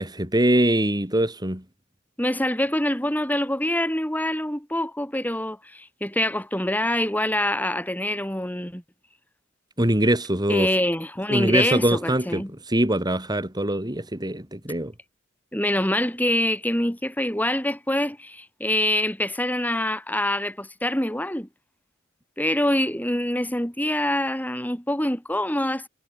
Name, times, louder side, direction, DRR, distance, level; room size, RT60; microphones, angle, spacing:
voice 1, 0.0-1.6 9.8-10.7 11.3-14.9, right 1 dB, 20° right, 4.7 m, -23 dB
voice 2, 2.2-8.8 10.5-12.5 15.5-21.5 22.4-25.9, left 1 dB, 10° left, 7.5 m, -25 dB
head